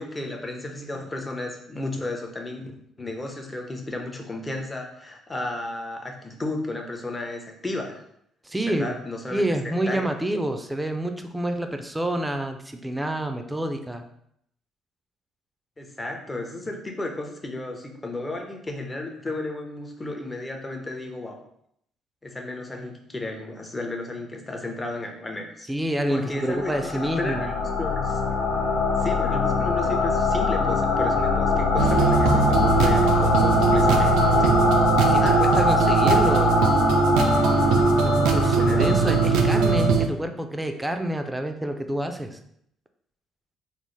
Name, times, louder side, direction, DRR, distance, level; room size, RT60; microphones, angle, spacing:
voice 1, 0.0-8.0 8.6-9.4 9.9-10.1 15.8-21.4 22.2-25.7 26.1-26.7 27.2-28.2 29.0-34.6 35.2-35.4 38.3-38.9, left 2 dB, 25° left, 2 dB, 0.7 m, -33 dB
voice 2, 8.4-9.0 9.3-14.1 25.7-27.5 35.1-37.0 38.0-42.4, right 1 dB, 10° right, 6 dB, 0.5 m, -28 dB
sound 1, 26.3-39.9, left 3 dB, 70° left, 0.5 m, -23 dB
sound 2, 31.8-40.1, right 6 dB, 75° right, 0.3 m, -21 dB
3.9 x 2.0 x 3.1 m, 0.73 s
hypercardioid pair, 55°, 0 cm